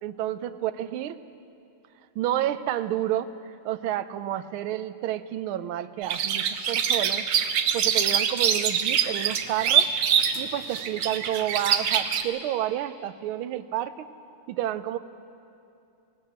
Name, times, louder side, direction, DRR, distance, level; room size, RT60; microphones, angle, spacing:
voice 1, 0.0-1.2 2.2-3.3 3.6-7.2 7.7-9.9 10.3-14.1 14.5-15.0, right 12 dB, 80° right, 12 dB, 1.5 m, -30 dB
sound 1, 6.0-12.2, right 8 dB, 65° right, 1.5 m, -24 dB
18.5 x 17.5 x 8.1 m, 2.6 s
omnidirectional pair, 2.4 m